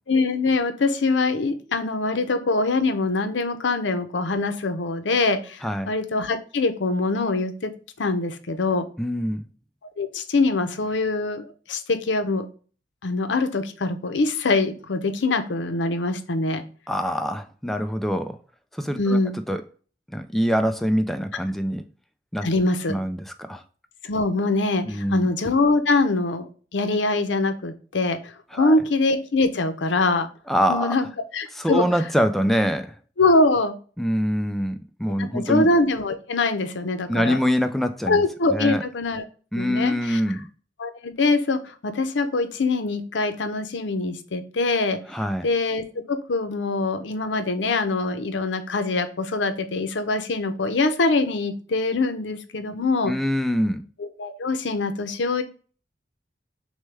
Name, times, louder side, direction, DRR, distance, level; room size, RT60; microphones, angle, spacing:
voice 1, 0.1-7.7 8.0-8.9 10.0-12.5 13.0-16.6 19.0-19.3 22.4-23.0 24.0-30.3 30.7-31.1 31.3-31.9 33.2-33.7 35.2-37.4 38.1-39.2 39.6-40.2 40.8-45.0 45.4-53.1 54.0-55.4, left 3 dB, 90° left, 0.6 m, -23 dB
voice 2, 9.0-9.5 16.9-18.4 18.7-19.6 20.1-21.9 22.3-22.5 22.9-23.6 24.8-25.3 28.5-28.8 30.5-31.0 31.5-33.0 34.0-35.7 37.1-38.2 38.5-38.8 39.5-40.5 45.1-45.5 53.0-53.9, equal, ahead, 0.3 m, -24 dB
6.3 x 2.2 x 3.4 m
head